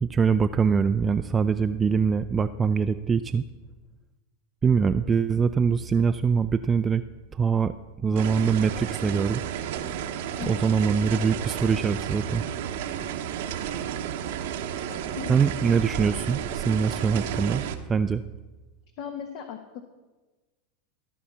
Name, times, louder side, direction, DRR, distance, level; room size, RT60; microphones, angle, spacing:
voice 1, 0.0-3.4 4.6-7.0 7.3-7.7 8.0-9.5 10.5-12.4 15.3-17.6 17.9-18.2, right 6 dB, 20° right, 9 dB, 0.4 m, -23 dB
sound 1, 8.2-17.8, right 9 dB, 70° right, 0.9 m, -32 dB
voice 2, 14.9-15.4 19.0-19.8, left 9 dB, 55° left, 6 dB, 1.1 m, -37 dB
14.5 x 5.5 x 7.1 m, 1.2 s
hypercardioid pair, 110°, 0 cm